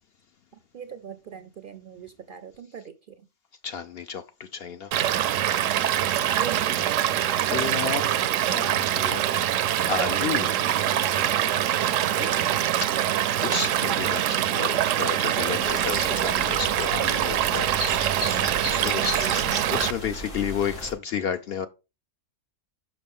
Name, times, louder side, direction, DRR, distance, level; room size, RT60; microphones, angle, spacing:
voice 1, 0.5-3.2 6.3-7.0 10.4-10.6 12.0-12.4 18.7-19.5, right 8 dB, 55° right, 0.6 m, -41 dB
voice 2, 3.6-4.9 7.5-8.1 8.5-9.2 9.9-10.5 11.0-11.5 12.2-12.3 12.8-12.9 13.4-18.4 18.8-19.1 19.7-21.7, left 7 dB, 60° left, 0.7 m, -32 dB
Stream / Liquid, 4.9-19.9, right 11 dB, 85° right, 1.0 m, -24 dB
sound 1, 15.6-20.9, left 1 dB, 80° left, 2.9 m, -35 dB
6.0 x 5.9 x 3.6 m
omnidirectional pair, 1.3 m